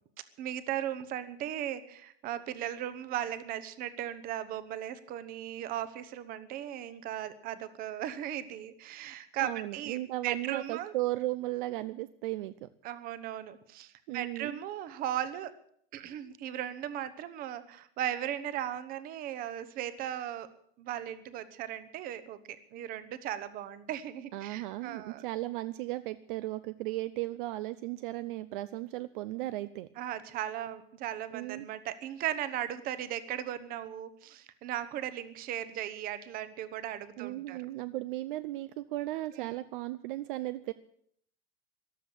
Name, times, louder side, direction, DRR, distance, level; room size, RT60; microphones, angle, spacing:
voice 1, 0.4-10.9 12.8-15.5 15.9-20.5 20.8-25.2 30.0-37.7 39.4-39.6, right 11 dB, 25° right, 14 dB, 1.0 m, -37 dB
voice 2, 9.4-12.7 14.1-14.6 24.3-29.9 31.3-31.7 37.2-40.7, right 17 dB, 55° right, 13 dB, 0.6 m, -36 dB
14.5 x 12.0 x 8.3 m, 0.65 s
supercardioid pair, 175°, 32 cm